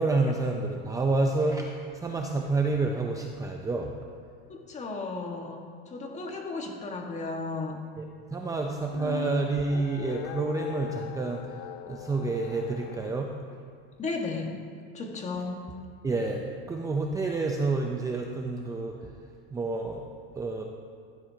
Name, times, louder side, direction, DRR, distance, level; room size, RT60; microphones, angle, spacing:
voice 1, 0.0-3.9 8.0-8.1 8.3-13.3 16.0-19.0 19.5-20.0 20.4-20.6, right 3 dB, 10° right, 2 dB, 0.6 m, -29 dB
voice 2, 4.5-5.6 5.9-7.8 14.0-14.5 14.9-15.6, left 3 dB, 25° left, 1 dB, 1.6 m, -34 dB
sound 1, 8.7-13.1, left 10 dB, 55° left, 0.6 m, -39 dB
15.5 x 11.5 x 2.8 m, 2.2 s
supercardioid pair, 140°, 30 cm